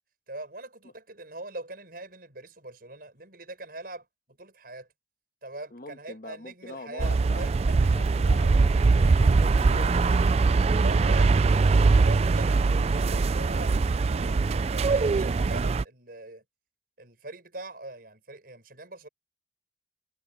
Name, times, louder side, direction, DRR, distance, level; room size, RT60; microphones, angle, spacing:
voice 1, 0.3-4.9 5.4-7.9 10.8-16.4 17.0-19.1, right 2 dB, 55° right, 7.2 m, -42 dB
voice 2, 5.7-7.5 7.9-10.0, left 2 dB, 50° left, 1.4 m, -43 dB
sound 1, 7.0-15.8, right 4 dB, 35° right, 0.3 m, -22 dB
head